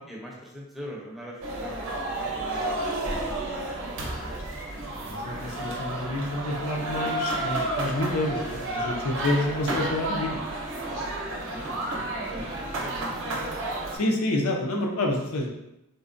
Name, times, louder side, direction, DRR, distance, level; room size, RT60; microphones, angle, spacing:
voice 1, 0.0-4.4 11.5-13.1, equal, ahead, -4 dB, 0.6 m, -42 dB
sound 1, 1.4-14.0, right 2 dB, 65° right, 0.6 m, -31 dB
voice 2, 4.7-10.5 13.9-15.5, left 1 dB, 70° left, 1 dB, 0.5 m, -28 dB
3.7 x 2.1 x 2.5 m, 0.88 s
head